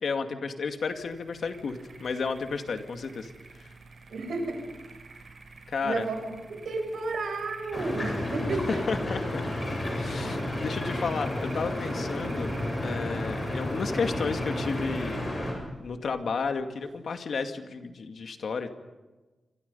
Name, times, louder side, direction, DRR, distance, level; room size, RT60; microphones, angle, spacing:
voice 1, 0.0-3.3 3.6-3.7 5.7-6.1 8.9-9.4 9.9-15.2 15.8-18.7, left 5 dB, 65° left, 6 dB, 2.2 m, -32 dB
sound 1, 0.6-17.0, right 3 dB, 50° right, 6.9 m, -49 dB
voice 2, 4.1-4.6 5.8-8.8, right 3 dB, 80° right, 4 dB, 6.0 m, -32 dB
sound 2, 7.7-15.5, left 1 dB, 30° left, 8.0 m, -31 dB
27.5 x 25.5 x 5.5 m, 1.2 s
wide cardioid pair, 160°, 0 cm